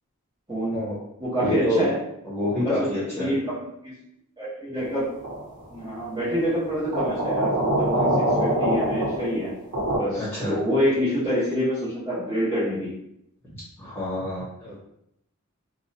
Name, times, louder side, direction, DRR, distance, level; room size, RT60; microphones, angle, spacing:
voice 1, 0.5-0.8 1.2-2.0 2.6-3.5 3.8-3.9 4.4-5.1 5.7-9.5 9.9-12.9, equal, 20° right, -12 dB, 0.8 m, -26 dB
voice 2, 1.4-1.9 2.2-3.3 10.1-10.6 13.5-14.8, left 1 dB, 10° left, -9 dB, 1.1 m, -28 dB
sound 1, 5.2-5.6 6.9-10.0, right 1 dB, 80° right, 0.7 m, -24 dB
2.4 x 2.0 x 2.6 m, 0.77 s
head